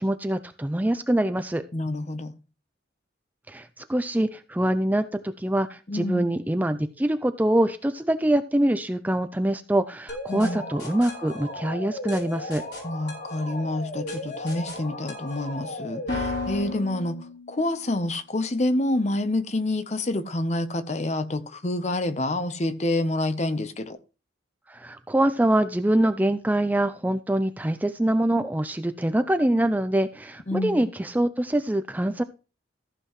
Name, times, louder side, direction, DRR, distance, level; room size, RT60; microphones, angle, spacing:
voice 1, 0.0-1.6 3.5-5.0 5.4-12.6 24.7-32.2, right 1 dB, 10° right, 0.4 m, -24 dB
voice 2, 1.7-2.4 5.9-6.3 10.3-10.6 12.8-17.1 17.5-24.0 30.5-30.9, left 1 dB, 35° left, 0.8 m, -27 dB
sound 1, 10.1-17.9, left 2 dB, 60° left, 4.6 m, -34 dB
14.5 x 7.7 x 3.1 m
head